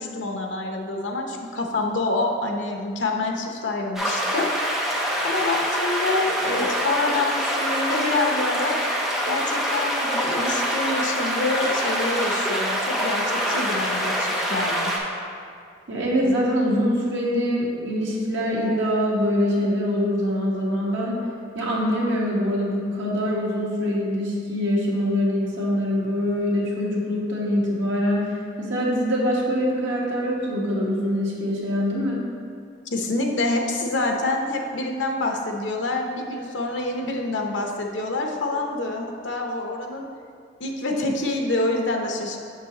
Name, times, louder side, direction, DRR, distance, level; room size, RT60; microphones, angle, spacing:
voice 1, 0.0-4.5 5.2-8.8 9.3-14.9 32.9-40.1 40.6-42.4, left 2 dB, 85° left, 2 dB, 0.7 m, -26 dB
sound 1, 4.0-15.0, equal, ahead, 0.6 m, -25 dB
voice 2, 15.9-21.2 21.5-32.2, equal, 85° right, -4 dB, 1.4 m, -24 dB
6.7 x 6.5 x 2.9 m, 2.2 s
head